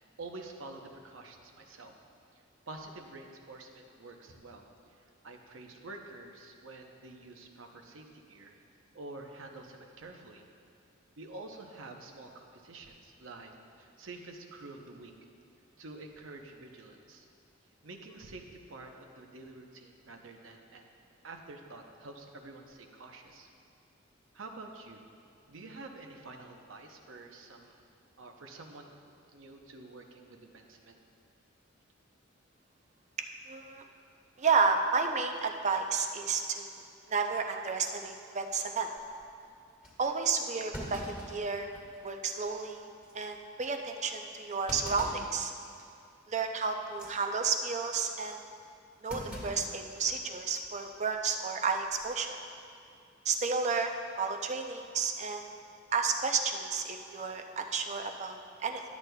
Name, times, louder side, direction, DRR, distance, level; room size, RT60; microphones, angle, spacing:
voice 1, 0.2-1.9 2.7-4.6 4.9-8.6 8.9-10.4 11.2-13.5 13.8-15.1 15.8-17.3 17.8-20.9 21.2-23.5 24.3-25.0 25.5-27.8 28.2-29.0 29.3-31.0, right 2 dB, 75° right, 3 dB, 0.7 m, -48 dB
voice 2, 33.5-33.8 34.4-36.7 37.1-38.9 40.0-41.7 42.0-42.9 43.1-45.5 46.3-48.4 49.0-52.4 53.3-53.9 54.2-55.5 55.9-58.8, right 5 dB, 35° right, 4 dB, 0.5 m, -31 dB
Thump thud, 39.0-39.3 39.8-39.9 40.7-42.1 42.5-42.6 43.0-43.3 44.7-45.3 45.8-46.1 46.8-47.1 49.1-50.3 50.6-50.7 51.9-52.2, equal, 5° right, 1.6 m, -43 dB
12.0 x 8.1 x 2.3 m, 2.4 s
head